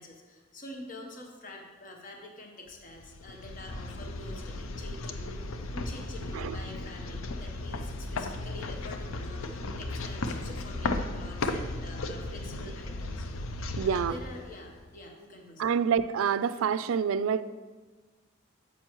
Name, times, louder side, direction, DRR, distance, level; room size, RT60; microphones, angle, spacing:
voice 1, 0.0-13.5 13.8-15.8, left 1 dB, 40° left, 1 dB, 1.0 m, -46 dB
sound 1, 2.9-14.9, left 2 dB, 85° left, 0.5 m, -36 dB
voice 2, 13.8-14.1 15.6-17.4, right 7 dB, 90° right, 15 dB, 0.3 m, -27 dB
9.1 x 7.0 x 3.0 m, 1.3 s
head